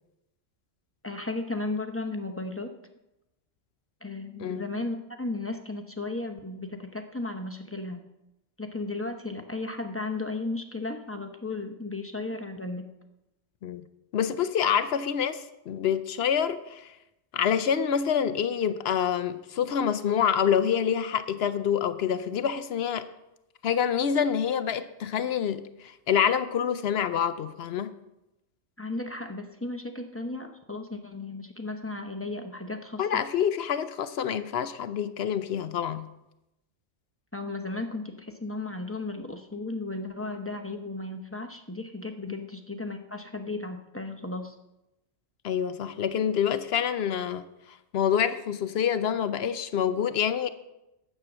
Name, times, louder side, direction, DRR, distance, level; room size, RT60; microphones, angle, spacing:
voice 1, 1.0-2.7 4.0-8.0 8.6-12.9 28.8-33.2 37.3-44.5, left 2 dB, 15° left, 0.7 m, -35 dB
voice 2, 14.1-16.9 17.3-23.1 23.6-27.9 33.0-36.1 42.3-42.4 45.4-50.5, left 8 dB, 65° left, 0.7 m, -27 dB
10.5 x 7.7 x 6.1 m
omnidirectional pair, 1.3 m